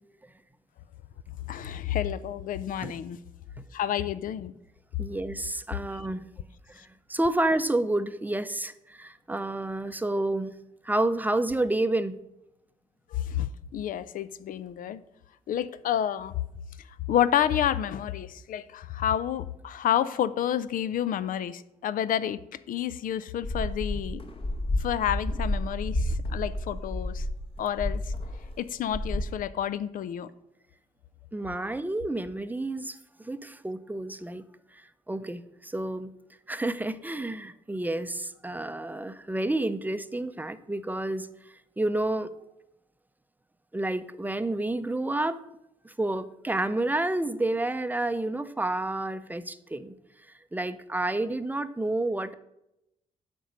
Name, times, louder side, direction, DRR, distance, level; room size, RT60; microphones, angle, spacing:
voice 1, 1.5-3.2 3.7-4.5 13.1-15.0 15.5-16.4 17.1-22.4 22.7-24.2 24.8-27.3 27.6-28.0 28.6-30.3, left 10 dB, 70° left, 16 dB, 0.5 m, -29 dB
voice 2, 5.0-6.3 6.7-10.5 10.8-12.2 31.3-34.5 34.7-36.1 36.5-41.3 41.8-42.3 43.7-45.4 45.8-50.0 50.5-52.3, right 2 dB, 10° right, 12 dB, 0.6 m, -30 dB
sound 1, 23.4-28.6 28.9-29.2, left 1 dB, 40° left, 1.3 m, -30 dB
7.8 x 5.2 x 6.4 m, 0.86 s
supercardioid pair, 65°, 15 cm